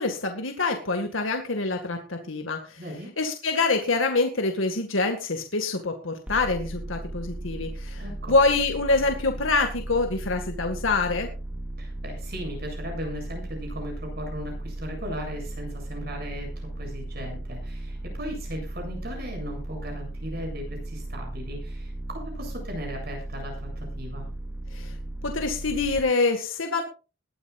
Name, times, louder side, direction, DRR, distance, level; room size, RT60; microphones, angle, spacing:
voice 1, 0.0-2.8 3.2-8.0 8.3-11.3 24.7-24.9 25.2-26.8, left 3 dB, 85° left, 4 dB, 2.0 m, -25 dB
voice 2, 2.8-3.1 8.0-8.3 11.8-24.3, equal, 50° right, 3 dB, 7.8 m, -37 dB
sound 1, 6.3-26.0, right 1 dB, 5° right, 2.1 m, -36 dB
21.0 x 13.0 x 2.5 m, 0.33 s
head